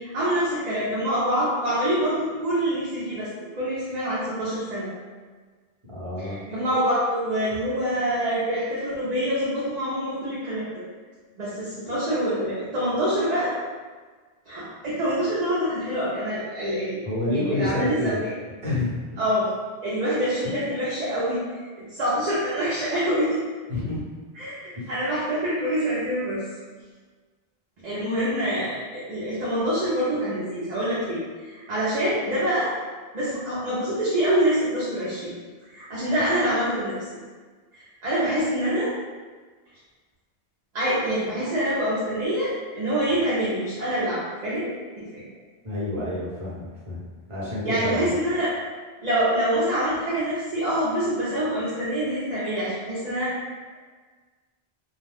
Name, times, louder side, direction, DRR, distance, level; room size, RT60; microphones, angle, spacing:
voice 1, 0.0-3.3 3.5-4.9 6.2-10.8 11.4-13.5 14.5-17.0 17.3-18.3 19.2-19.5 19.8-23.4 24.3-26.4 27.8-32.7 33.1-35.3 35.7-37.1 37.7-38.9 40.7-44.7 45.0-45.2 47.6-48.5 49.0-53.5, equal, 45° right, -9 dB, 0.7 m, -26 dB
voice 2, 5.9-6.4 17.0-18.2 18.6-19.0 20.4-20.6 23.7-24.0 24.7-24.9 45.6-47.0 47.3-48.1, left 2 dB, 30° right, -9 dB, 1.1 m, -28 dB
2.4 x 2.2 x 3.4 m, 1.4 s
omnidirectional pair, 1.1 m